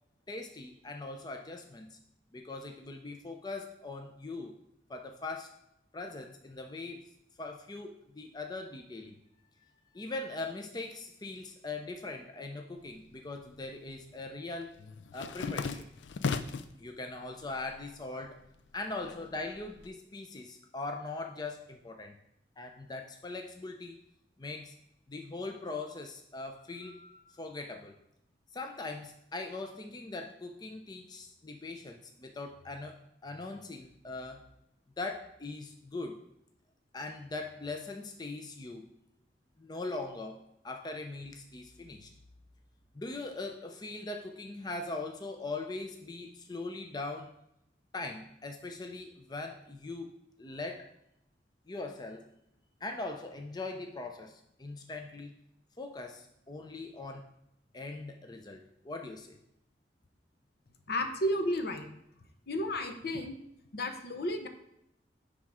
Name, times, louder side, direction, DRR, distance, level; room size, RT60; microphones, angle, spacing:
voice 1, 0.3-2.0 2.3-4.6 4.9-5.5 5.9-7.1 7.4-9.2 9.9-14.8 15.1-15.9 16.8-18.4 18.7-22.2 22.6-24.0 24.4-24.7 25.1-27.9 28.5-34.5 35.0-36.2 36.9-38.9 39.6-42.1 42.9-47.3 47.9-50.9 51.7-52.3 52.8-55.3 55.8-57.3 57.7-59.4, left 3 dB, 25° left, 4 dB, 0.5 m, -41 dB
sound 1, 12.9-13.7 14.0-16.8 17.2-17.9 18.2-19.9, left 5 dB, 90° left, 0.4 m, -37 dB
voice 2, 60.9-61.9 62.5-63.4 63.7-64.5, left 1 dB, 60° left, 6 dB, 0.9 m, -32 dB
10.0 x 3.7 x 4.8 m, 0.78 s
head